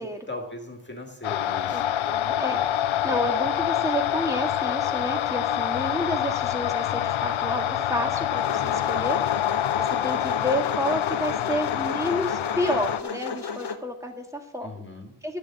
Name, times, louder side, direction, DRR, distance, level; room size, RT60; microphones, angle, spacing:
voice 1, 0.0-1.8 14.6-15.1, left 2 dB, 25° left, 2 dB, 2.2 m, -38 dB
sound 1, 1.2-13.0, left 11 dB, 80° left, 0.6 m, -26 dB
voice 2, 1.7-9.2 9.8-14.8 15.2-15.4, equal, 5° right, 3 dB, 2.0 m, -30 dB
sound 2, 8.4-13.8, left 5 dB, 55° left, 1.2 m, -34 dB
12.5 x 6.8 x 7.9 m, 0.79 s
wide cardioid pair, 110°, 47 cm